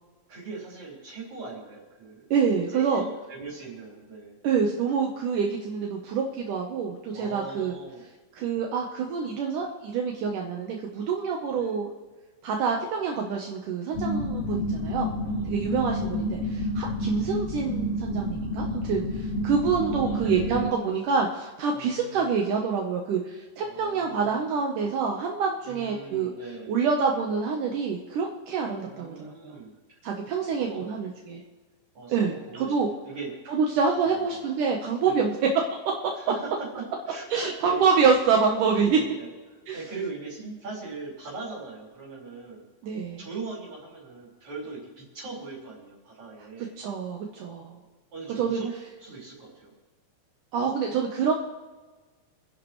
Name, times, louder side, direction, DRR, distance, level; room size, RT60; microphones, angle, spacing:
voice 1, 0.3-2.3 2.7-4.4 7.1-8.1 8.5-8.7 11.6-11.8 15.3-15.5 17.5-17.7 19.8-20.7 21.7-22.4 23.6-24.5 25.6-26.7 28.8-29.7 30.5-30.9 31.9-33.3 34.0-34.5 35.1-35.4 36.1-37.8 38.9-39.3 39.7-42.6 43.2-46.8 48.1-48.7 49.0-49.7 50.7-50.8, right 4 dB, 55° right, -5 dB, 6.0 m, -40 dB
voice 2, 2.3-3.0 4.4-7.7 8.4-11.9 12.4-15.1 15.4-26.3 26.7-29.6 30.0-31.4 32.1-32.9 33.5-35.4 37.3-39.0 39.7-39.8 42.8-43.2 46.8-47.8 48.4-48.6 50.5-51.3, right 5 dB, 70° right, 1 dB, 2.5 m, -26 dB
sound 1, 13.9-20.7, left 1 dB, 30° left, 1.9 m, -29 dB
29.5 x 10.5 x 3.2 m, 1.3 s
omnidirectional pair, 4.0 m